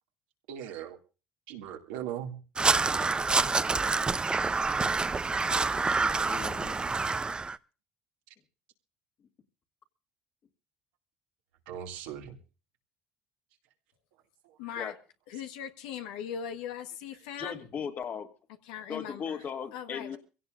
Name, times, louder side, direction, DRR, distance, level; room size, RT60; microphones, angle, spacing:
voice 1, 0.5-1.0 1.5-2.4 11.7-12.4 14.4-14.6, right 10 dB, 90° right, 2.4 m, -39 dB
Crow, 2.6-7.6, right 4 dB, 20° right, 0.6 m, -27 dB
voice 2, 5.9-6.8 14.8-14.9 17.4-18.3 18.9-20.2, left 7 dB, 50° left, 2.3 m, -37 dB
voice 3, 14.6-14.9 15.3-17.6 18.7-19.4 19.7-20.2, left 8 dB, 90° left, 1.4 m, -39 dB
23.5 x 16.5 x 2.6 m
supercardioid pair, 85°, 4 cm